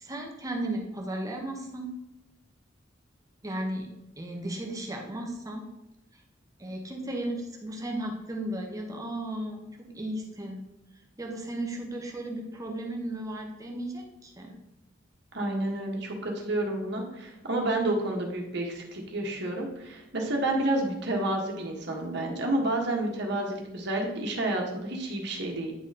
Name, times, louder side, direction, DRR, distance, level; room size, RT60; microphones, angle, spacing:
voice 1, 0.0-1.9 3.4-3.9 4.2-5.7 6.6-10.6 11.2-14.5, right 1 dB, 20° right, 1 dB, 1.0 m, -35 dB
voice 2, 15.3-25.7, right 1 dB, 60° right, 0 dB, 1.5 m, -30 dB
9.6 x 4.0 x 4.1 m, 0.94 s
head